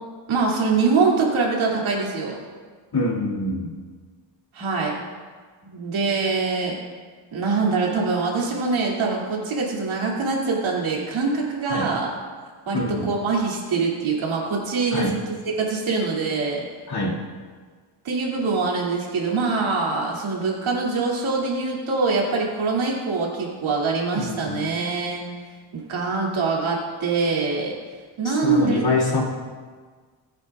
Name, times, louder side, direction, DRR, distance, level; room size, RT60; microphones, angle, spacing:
voice 1, 0.3-2.4 4.5-5.0 5.6-6.8 7.3-12.1 12.7-16.6 18.0-25.2 25.7-27.7 28.2-28.8, right 4 dB, 90° right, -3 dB, 2.6 m, -24 dB
voice 2, 2.9-3.7 11.7-11.9 12.7-13.1 14.9-15.1 16.9-17.2 24.1-24.7 28.2-29.2, left 2 dB, 55° left, -3 dB, 2.5 m, -25 dB
19.5 x 8.9 x 2.4 m, 1.5 s
cardioid pair, 105°, 47 cm